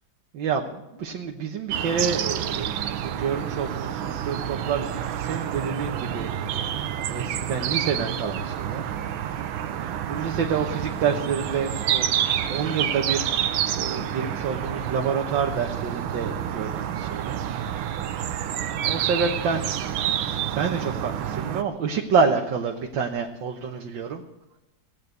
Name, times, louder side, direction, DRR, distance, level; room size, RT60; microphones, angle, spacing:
voice 1, 0.3-8.8 9.3-9.4 9.6-12.1 12.5-13.3 13.8-17.9 18.5-19.9 20.6-24.2, right 5 dB, 75° right, 2 dB, 1.8 m, -28 dB
sound 1, 1.7-21.6, right 10 dB, 90° right, 1.6 m, -28 dB
17.5 x 9.4 x 8.1 m, 0.95 s
omnidirectional pair, 2.1 m